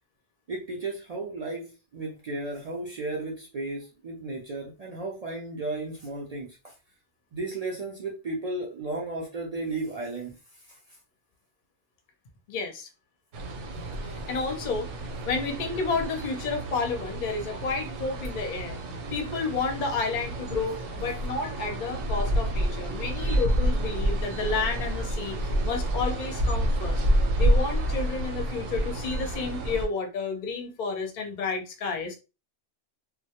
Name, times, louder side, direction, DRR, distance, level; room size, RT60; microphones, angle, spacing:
voice 1, 0.5-6.7 7.3-11.0, right 2 dB, 65° right, 0.3 m, -34 dB
voice 2, 12.5-12.9 14.0-14.9 15.2-18.8 19.1-27.0 27.4-32.1, left 4 dB, 55° left, 0.6 m, -31 dB
sound 1, 13.3-29.9, right 1 dB, 90° right, 0.9 m, -29 dB
2.1 x 2.0 x 2.8 m
omnidirectional pair, 1.2 m